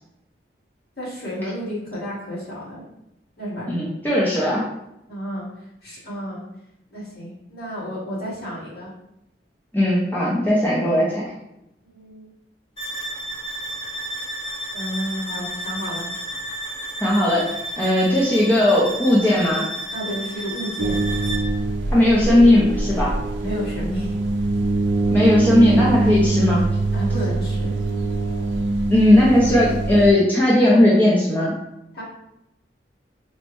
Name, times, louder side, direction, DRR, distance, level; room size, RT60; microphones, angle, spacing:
voice 1, 1.0-2.8 3.4-3.7 5.1-5.4 5.8-6.4 6.9-8.9 11.9-12.2 14.7-16.1 19.9-21.0 23.4-24.1 26.9-27.8 31.9-32.0, equal, 60° left, -7 dB, 1.4 m, -31 dB
voice 2, 3.7-4.6 9.7-11.3 17.0-17.4 17.8-19.6 21.9-23.1 25.1-26.6 28.9-31.6, left 1 dB, 10° left, -6 dB, 0.5 m, -17 dB
sound 1, 12.8-21.6, right 1 dB, 30° left, 0.8 m, -32 dB
sound 2, 20.8-30.1, right 2 dB, 85° right, 0.4 m, -23 dB
4.3 x 2.0 x 3.0 m, 0.87 s
head